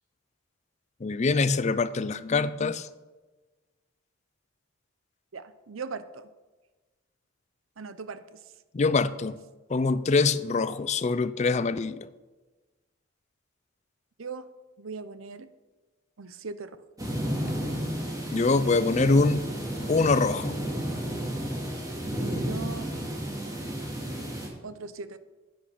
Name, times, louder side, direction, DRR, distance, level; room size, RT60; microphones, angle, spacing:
voice 1, 1.0-2.9 8.7-9.4 9.7-12.0 18.3-19.4 19.9-20.6, left 3 dB, 35° left, 0.4 m, -24 dB
voice 2, 5.3-6.3 7.8-8.4 14.2-14.5 14.8-15.5 16.2-16.8 22.4-22.9 24.6-25.2, right 4 dB, 85° right, 0.7 m, -39 dB
sound 1, 17.0-24.5, equal, 20° right, 2.5 m, -32 dB
9.8 x 8.5 x 5.8 m
head